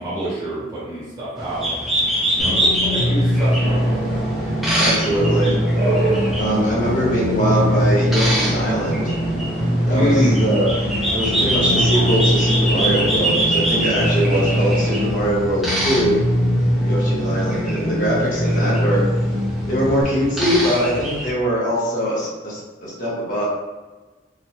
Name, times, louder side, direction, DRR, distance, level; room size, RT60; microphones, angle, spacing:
voice 1, 0.0-1.7 2.3-4.0 9.9-10.4, equal, 20° right, -11 dB, 0.8 m, -25 dB
sound 1, 1.4-21.3, right 1 dB, ahead, 0.4 m, -25 dB
sound 2, 2.4-20.0, equal, 15° left, 0.9 m, -22 dB
sound 3, 3.6-15.1, right 2 dB, 60° right, 0.8 m, -29 dB
voice 2, 4.8-5.6 6.4-9.1 9.9-10.7 11.1-16.2 16.8-19.0 19.7-23.5, equal, 45° left, -6 dB, 1.0 m, -22 dB
2.9 x 2.1 x 3.0 m, 1.2 s
head